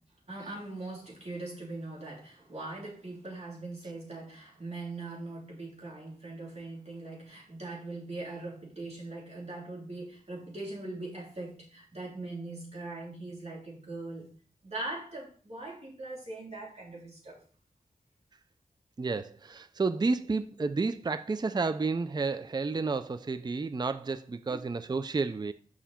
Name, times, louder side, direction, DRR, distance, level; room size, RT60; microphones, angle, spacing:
voice 1, 0.3-14.3 14.6-17.4 24.5-24.6, right 2 dB, 45° right, 3.5 m, -41 dB
voice 2, 19.0-25.5, right 4 dB, 30° right, 0.5 m, -31 dB
7.2 x 5.6 x 4.3 m
wide cardioid pair, 75°, 15 cm